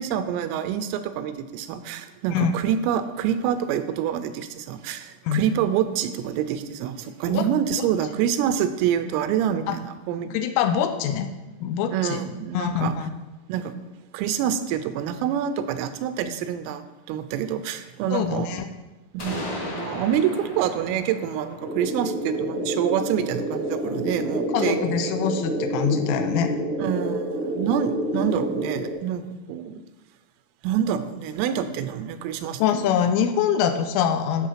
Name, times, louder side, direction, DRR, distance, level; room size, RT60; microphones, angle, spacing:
voice 1, 0.0-10.4 11.9-12.9 13.5-13.7 14.1-18.5 19.1-24.8 25.0-25.2 26.8-29.8 30.6-32.9, right 9 dB, 85° right, 10 dB, 3.3 m, -27 dB
voice 2, 10.3-11.3 11.6-12.2 12.5-13.1 18.1-18.7 24.5-26.5 32.6-34.5, left 8 dB, 80° left, 7 dB, 3.2 m, -24 dB
sound 1, 19.2-23.0, left 1 dB, 55° left, 1.3 m, -36 dB
sound 2, 21.6-28.9, right 1 dB, 20° right, 0.6 m, -28 dB
12.5 x 6.2 x 5.7 m, 1.1 s
omnidirectional pair, 5.9 m